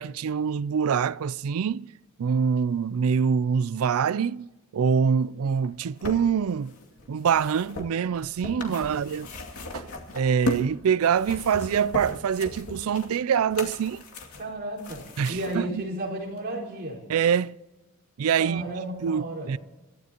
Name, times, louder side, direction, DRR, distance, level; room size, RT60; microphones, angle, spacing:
voice 1, 0.0-1.9 2.2-6.7 7.1-9.3 9.7-9.9 10.1-14.0 15.2-15.8 17.1-17.6 18.2-18.6 19.0-19.6, right 7 dB, 70° right, 0.4 m, -25 dB
sound 1, 5.6-10.7 11.1-15.6 16.4-16.5, left 2 dB, 75° left, 2.5 m, -37 dB
voice 2, 8.6-9.0 14.4-15.0 15.3-17.0 18.4-19.5, right 1 dB, 45° right, 4.6 m, -33 dB
27.0 x 13.5 x 2.9 m
head